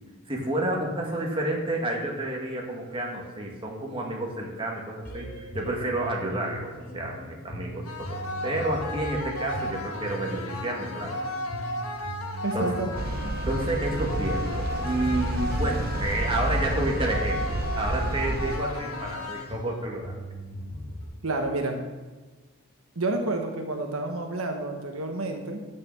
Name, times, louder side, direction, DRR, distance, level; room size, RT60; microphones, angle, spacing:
voice 1, 0.3-8.1 8.4-11.2 12.5-12.7 13.5-20.1, right 1 dB, 25° right, -1 dB, 1.9 m, -30 dB
sound 1, 5.0-21.0, right 1 dB, 40° left, 4.0 m, -39 dB
sound 2, 7.8-19.8, left 1 dB, 85° left, 1.2 m, -35 dB
voice 2, 12.4-13.4 21.2-21.8 23.0-25.6, right 2 dB, 75° right, 4 dB, 1.1 m, -30 dB
sound 3, 12.9-18.6, right 2 dB, 45° right, 0.7 m, -30 dB
9.8 x 6.6 x 7.2 m, 1.2 s
head